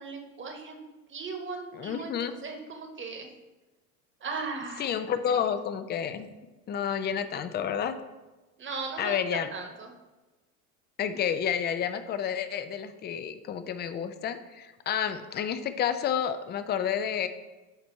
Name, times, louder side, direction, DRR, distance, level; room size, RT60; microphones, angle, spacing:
voice 1, 0.0-3.3 4.2-5.0 5.3-5.4 8.6-9.9, right 4 dB, 25° right, 3 dB, 1.3 m, -38 dB
voice 2, 1.7-2.3 4.8-6.3 6.7-8.0 9.0-9.5 11.0-17.3, left 8 dB, 25° left, 10 dB, 0.5 m, -30 dB
5.9 x 4.3 x 5.4 m, 1.1 s
hypercardioid pair, 90°, 44 cm